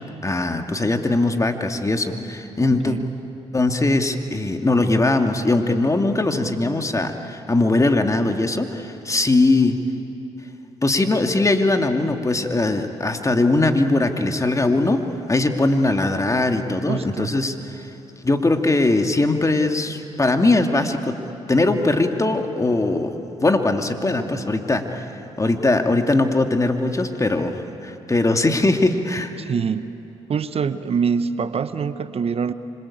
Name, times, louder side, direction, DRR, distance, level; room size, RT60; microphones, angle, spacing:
voice 1, 0.2-3.0 3.5-9.8 10.8-15.0 15.3-17.8 18.2-21.2 21.5-23.1 23.4-25.1 25.4-29.3, left 2 dB, 25° left, 5 dB, 2.6 m, -20 dB
voice 2, 2.6-3.1 16.9-17.4 29.4-29.9 30.3-32.5, right 6 dB, 50° right, 13 dB, 1.0 m, -25 dB
26.5 x 26.0 x 8.8 m, 3.0 s
supercardioid pair, 50°, 13 cm